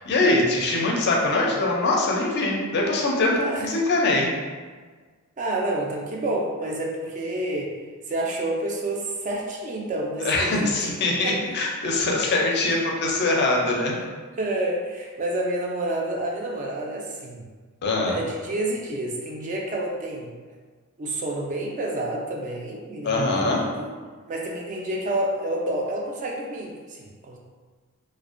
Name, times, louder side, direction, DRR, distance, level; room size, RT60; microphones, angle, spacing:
voice 1, 0.0-4.3 10.2-14.0 17.8-18.2 23.0-23.7, left 2 dB, 50° left, -1 dB, 0.4 m, -23 dB
voice 2, 3.3-3.6 5.4-7.7 8.1-10.7 11.2-11.4 14.4-17.4 18.0-20.3 21.0-23.9 24.3-27.4, right 1 dB, 35° right, -1 dB, 0.3 m, -29 dB
2.4 x 2.1 x 2.5 m, 1.5 s
head